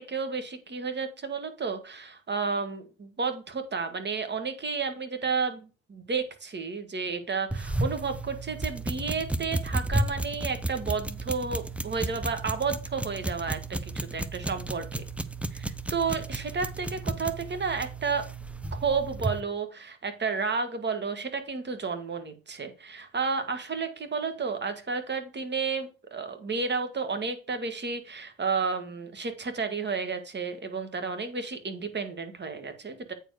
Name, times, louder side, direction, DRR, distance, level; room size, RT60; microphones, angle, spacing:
voice 1, 0.0-15.0 15.5-18.2 18.7-33.1, right 5 dB, 35° right, 8 dB, 1.8 m, -32 dB
sound 1, 7.5-19.4, right 2 dB, 5° right, 0.6 m, -33 dB
8.8 x 4.6 x 4.9 m, 0.34 s
cardioid pair, 90°, 30 cm